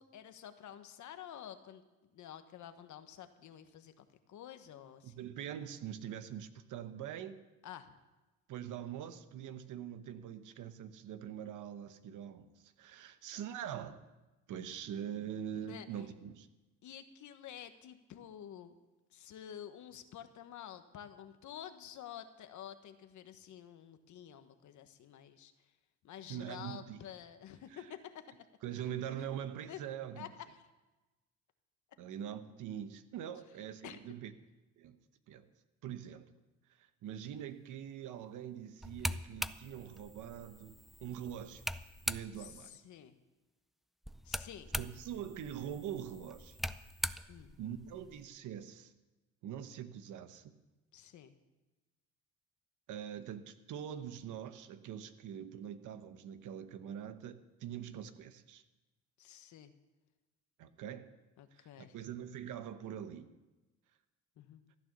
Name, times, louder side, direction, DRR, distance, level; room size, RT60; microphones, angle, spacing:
voice 1, 0.0-1.8 2.1-5.2 7.6-7.9 15.7-15.9 16.8-18.8 19.1-25.5 26.0-28.3 29.1-29.3 29.7-29.8 30.1-30.5 33.8-34.0 42.4-43.1 44.2-44.7 47.3-47.6 50.9-51.3 59.2-59.7 61.4-61.9 64.4-64.6, left 10 dB, 75° left, 9 dB, 1.2 m, -50 dB
voice 2, 5.0-7.4 8.5-14.0 14.5-16.5 26.3-27.0 27.7-27.9 28.6-30.3 32.0-34.3 34.8-35.0 35.3-35.4 35.8-36.3 36.8-41.6 42.1-42.8 44.8-46.6 47.6-48.9 49.4-50.5 52.9-58.6 60.6-61.1 61.5-63.3, right 9 dB, 85° right, 11 dB, 1.0 m, -43 dB
sound 1, 38.8-42.6 44.0-48.2, equal, ahead, 0.4 m, -42 dB
15.0 x 9.7 x 6.8 m, 1.1 s
cardioid pair, 90°, 30 cm